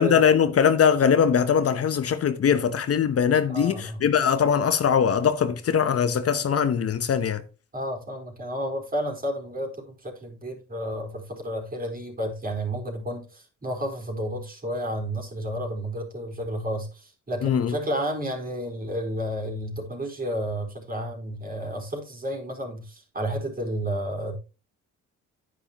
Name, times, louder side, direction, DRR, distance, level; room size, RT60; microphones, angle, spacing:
voice 1, 0.0-7.4 17.4-17.8, left 7 dB, 50° left, 1.0 m, -21 dB
voice 2, 3.5-4.0 7.7-24.4, equal, 30° right, 4.3 m, -31 dB
9.9 x 9.8 x 3.0 m
cardioid pair, 90°, 30 cm